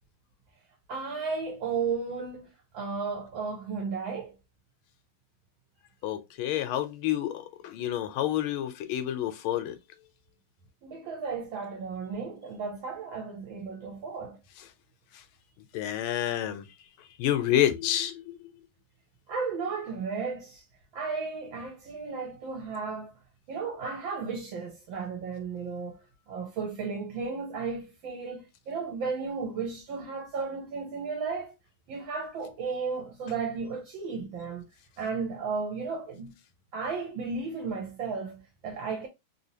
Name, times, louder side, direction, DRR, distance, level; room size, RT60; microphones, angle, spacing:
voice 1, 0.9-4.3 10.8-14.4 19.3-20.6 20.9-23.1 23.5-31.5 31.9-34.6 35.0-36.4 36.7-39.1, right 5 dB, 70° right, 1.5 m, -34 dB
voice 2, 6.0-9.8 15.7-16.7 17.2-18.4, left 12 dB, 85° left, 1.5 m, -28 dB
3.6 x 2.7 x 2.8 m
omnidirectional pair, 2.3 m